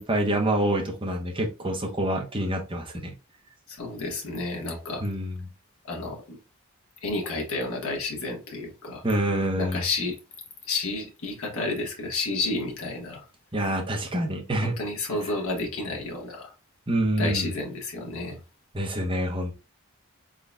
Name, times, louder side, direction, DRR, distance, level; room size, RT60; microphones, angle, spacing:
voice 1, 0.0-3.1 5.0-5.4 9.0-9.9 13.5-14.8 16.9-17.5 18.7-19.5, right 1 dB, 25° right, 0.8 m, -26 dB
voice 2, 3.7-5.0 5.9-6.4 7.0-9.1 9.6-10.2 10.6-13.3 14.6-16.5 17.2-18.4, left 2 dB, 75° left, 1.3 m, -31 dB
3.9 x 3.8 x 2.2 m
head